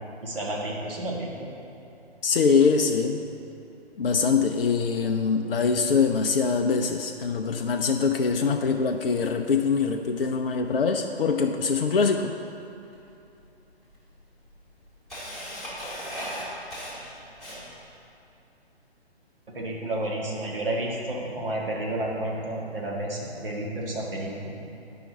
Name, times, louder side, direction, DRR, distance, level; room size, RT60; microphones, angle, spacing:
voice 1, 0.2-1.5 19.5-24.6, right 1 dB, 60° right, -2 dB, 1.6 m, -31 dB
voice 2, 2.2-3.2 4.0-12.3, left 5 dB, 60° left, 4 dB, 0.5 m, -23 dB
Camera, 12.9-13.0 13.9-14.0 14.4-17.9, equal, ahead, 1.2 m, -37 dB
9.4 x 5.0 x 3.8 m, 2.8 s
figure-of-eight pair, 135°, 32 cm